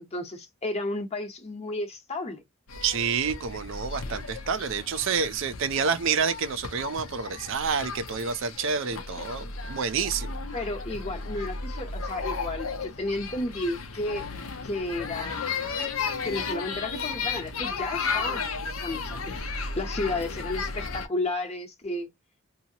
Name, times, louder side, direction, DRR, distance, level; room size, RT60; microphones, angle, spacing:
voice 1, 0.0-2.4 10.5-14.2 14.6-15.5 16.2-22.1, left 2 dB, 30° left, 1.0 m, -33 dB
sound 1, 2.7-21.1, left 4 dB, 85° left, 0.7 m, -34 dB
voice 2, 2.8-10.4, right 6 dB, 65° right, 0.5 m, -28 dB
2.8 x 2.7 x 2.8 m
head